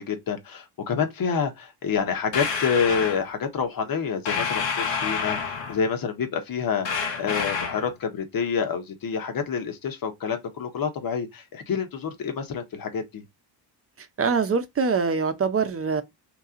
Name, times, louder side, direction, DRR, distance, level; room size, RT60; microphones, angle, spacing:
voice 1, 0.0-6.9 7.2-13.2, left 6 dB, 50° left, 1.3 m, -28 dB
sound 1, 2.3-3.2 4.3-5.8 6.8-7.9, left 5 dB, 80° left, 1.3 m, -28 dB
voice 2, 14.0-16.0, right 5 dB, 30° right, 0.9 m, -24 dB
3.0 x 2.9 x 3.8 m
supercardioid pair, 75°, 44 cm